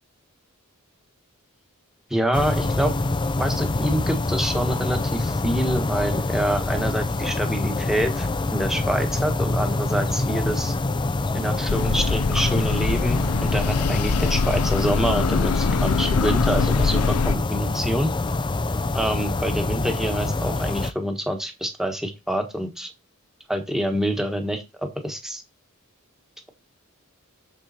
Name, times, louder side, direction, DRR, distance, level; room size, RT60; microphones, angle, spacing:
voice 1, 2.1-2.9 3.4-10.7 11.3-18.1 18.9-22.9 23.5-25.4, right 1 dB, ahead, 4 dB, 1.4 m, -26 dB
sound 1, 2.3-20.9, left 2 dB, 20° left, 0.5 m, -26 dB
sound 2, 11.7-17.4, left 4 dB, 85° left, 0.6 m, -23 dB
6.9 x 6.6 x 4.3 m, 0.25 s
head